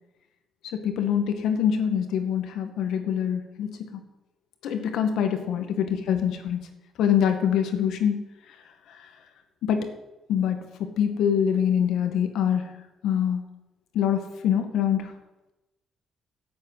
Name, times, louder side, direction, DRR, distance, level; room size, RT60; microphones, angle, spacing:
voice 1, 0.7-3.7 4.6-6.6 7.0-8.2 9.6-9.9 10.3-12.7 13.0-13.4 13.9-15.1, left 8 dB, 80° left, 6 dB, 2.0 m, -24 dB
11.5 x 8.4 x 8.2 m, 0.98 s
cardioid pair, 90°, 0 cm